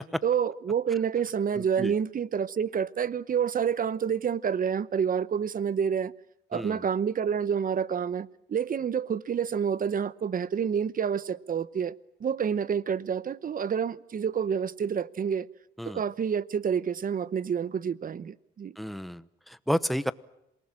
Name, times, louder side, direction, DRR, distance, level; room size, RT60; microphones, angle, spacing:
voice 1, 0.2-6.1 6.5-15.5 15.9-18.7, right 7 dB, 45° right, 0.9 m, -28 dB
voice 2, 18.8-19.2 19.7-20.1, equal, ahead, 1.0 m, -30 dB
27.5 x 19.0 x 8.9 m
cardioid pair, 90°, 20 cm